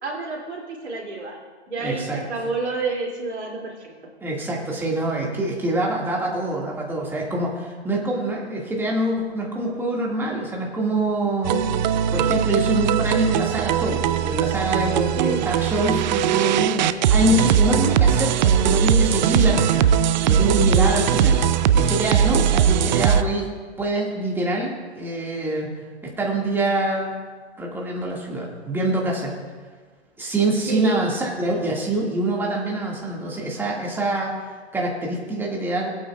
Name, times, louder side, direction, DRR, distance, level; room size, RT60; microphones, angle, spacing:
voice 1, 0.0-1.4 1.7-3.9 15.1-15.4 30.7-31.0, right 3 dB, 85° right, -1 dB, 2.6 m, -29 dB
voice 2, 1.8-2.2 4.2-11.6 12.1-19.9 20.2-21.4 21.7-23.5 23.8-25.7 26.0-27.2 27.6-29.4 30.2-35.9, right 1 dB, 5° right, -3 dB, 1.9 m, -25 dB
sound 1, 11.4-23.2, right 8 dB, 45° right, 0.5 m, -20 dB
20.0 x 8.6 x 2.4 m, 1.4 s
hypercardioid pair, 125°, 33 cm